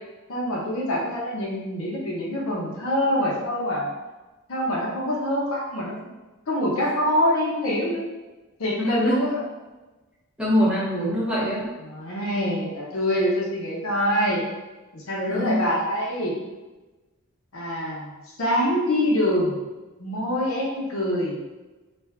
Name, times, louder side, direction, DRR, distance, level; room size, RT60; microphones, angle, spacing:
voice 1, 0.3-3.9 4.5-6.0 6.5-8.1 8.6-9.4 11.8-14.5 14.9-16.4 17.5-18.1 18.4-19.6 20.0-21.4, equal, 65° left, -4 dB, 0.7 m, -25 dB
voice 2, 8.8-9.2 10.4-11.7 15.3-15.6, equal, 5° right, -10 dB, 0.9 m, -23 dB
2.5 x 2.2 x 3.4 m, 1.2 s
head